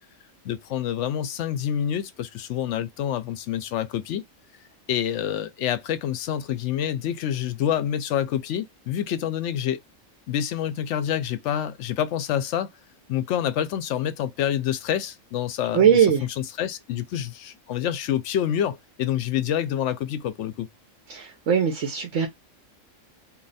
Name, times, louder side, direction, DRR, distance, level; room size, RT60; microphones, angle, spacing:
voice 1, 0.4-4.2 4.9-9.8 10.3-12.7 13.1-20.7, left 10 dB, 70° left, 0.8 m, -27 dB
voice 2, 15.7-16.3 21.1-22.3, right 8 dB, 70° right, 1.1 m, -20 dB
3.1 x 2.6 x 4.0 m
omnidirectional pair, 1.3 m